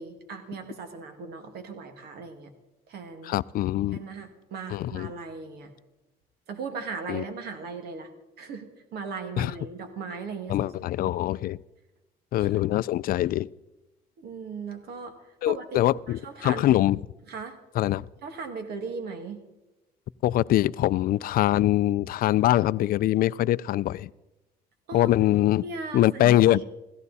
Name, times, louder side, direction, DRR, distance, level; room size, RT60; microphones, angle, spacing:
voice 1, 0.0-2.5 2.9-3.3 3.9-5.7 6.5-8.1 8.4-11.2 12.4-12.6 14.2-15.2 15.5-15.8 16.1-16.8 17.3-17.6 18.2-19.5 24.9-25.1 25.6-26.6, right 4 dB, 70° right, 2.2 m, -38 dB
voice 2, 3.2-4.0 4.7-5.1 7.1-7.2 9.4-9.5 10.5-11.6 12.3-13.5 15.4-17.0 17.8-18.1 20.2-24.1 24.9-25.6 25.9-26.6, left 14 dB, 60° left, 0.4 m, -23 dB
16.0 x 14.5 x 4.2 m
cardioid pair, 110°, 17 cm